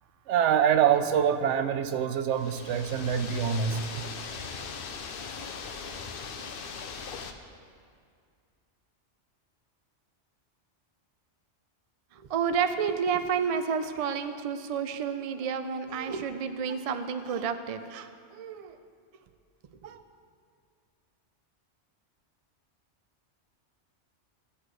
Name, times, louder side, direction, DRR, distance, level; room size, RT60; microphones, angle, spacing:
voice 1, 0.3-3.9, right 8 dB, 80° right, 10 dB, 0.9 m, -25 dB
sound 1, 2.3-7.3, left 5 dB, 55° left, 0.8 m, -39 dB
voice 2, 12.1-18.8 19.8-20.0, right 6 dB, 60° right, 9 dB, 0.4 m, -30 dB
16.5 x 8.1 x 3.1 m, 2.2 s
omnidirectional pair, 1.2 m